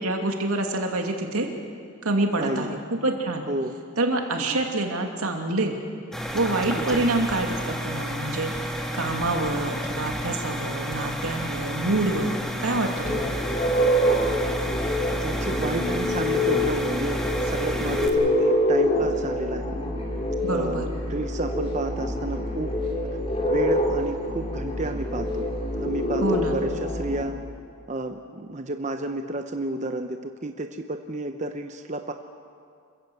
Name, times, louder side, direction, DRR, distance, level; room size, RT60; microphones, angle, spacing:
voice 1, 0.0-1.5 2.0-3.4 4.0-5.8 6.3-8.5 8.9-13.4 20.4-20.9 26.2-26.6, right 2 dB, 85° right, 3 dB, 2.6 m, -26 dB
voice 2, 2.4-2.7 3.5-3.8 4.4-4.6 6.8-7.1 15.2-19.8 20.4-22.7 23.4-25.5 25.8-27.4 27.9-32.1, right 2 dB, 30° right, 6 dB, 0.8 m, -31 dB
sound 1, 6.1-18.1, equal, ahead, 1.7 m, -31 dB
sound 2, 13.0-27.3, left 1 dB, 25° left, 3.0 m, -26 dB
27.0 x 14.5 x 8.0 m, 2.3 s
head